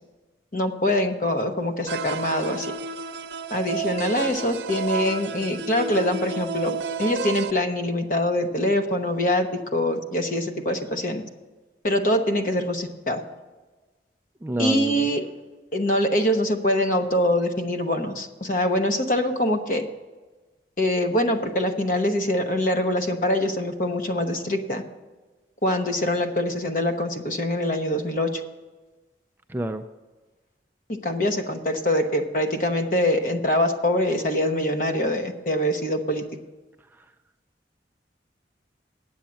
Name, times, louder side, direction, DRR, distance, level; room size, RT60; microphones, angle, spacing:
voice 1, 0.5-2.7 3.5-11.2 11.8-13.2 14.6-15.2 15.7-19.9 20.8-24.8 25.6-28.4 30.9-36.2, left 1 dB, 45° left, 6 dB, 1.0 m, -24 dB
sound 1, 1.9-7.5, right 5 dB, 75° right, 0.5 m, -31 dB
voice 2, 14.4-15.1 29.5-29.8, right 1 dB, 10° right, 7 dB, 0.3 m, -28 dB
9.0 x 7.9 x 7.2 m, 1.2 s
head